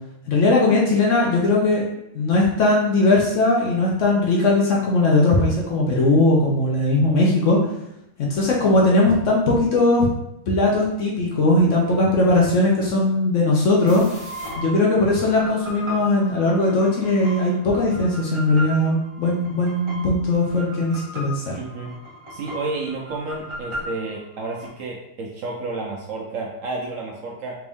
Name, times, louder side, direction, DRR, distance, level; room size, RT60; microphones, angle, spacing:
voice 1, 0.3-1.8 2.1-7.6 8.2-10.1 10.5-14.0 14.6-21.5, left 2 dB, 60° left, -3 dB, 0.9 m, -19 dB
sound 1, 13.9-24.7, equal, 25° right, 0.6 m, -37 dB
voice 2, 21.6-21.9 22.3-27.6, right 3 dB, 70° right, -1 dB, 0.8 m, -31 dB
3.4 x 2.6 x 3.4 m, 0.82 s
omnidirectional pair, 1.7 m